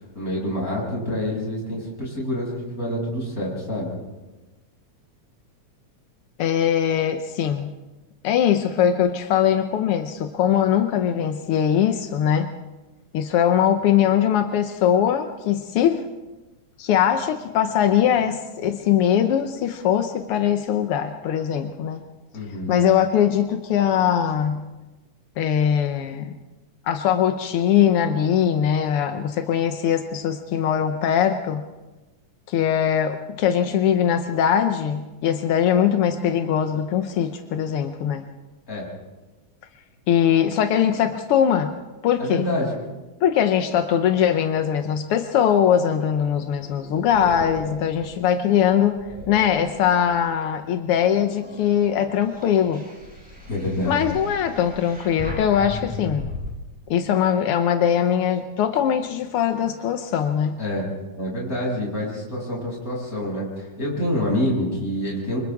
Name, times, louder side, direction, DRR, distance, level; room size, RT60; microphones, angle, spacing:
voice 1, 0.1-3.9 22.3-22.8 38.7-38.9 42.2-42.7 53.5-54.0 60.6-60.9 61.2-65.4, left 1 dB, 25° left, -4 dB, 7.5 m, -27 dB
voice 2, 6.4-7.7 8.2-12.5 13.1-16.0 16.8-22.0 22.7-24.6 25.4-26.3 26.8-31.6 32.5-38.3 40.1-41.7 42.0-42.4 43.2-49.0 49.3-52.8 53.8-56.3 56.9-60.6, left 9 dB, 70° left, 7 dB, 1.4 m, -21 dB
sound 1, 46.4-50.3 50.8-56.5, left 1 dB, 5° right, 6.7 m, -38 dB
29.5 x 25.5 x 3.6 m, 1.1 s
omnidirectional pair, 3.5 m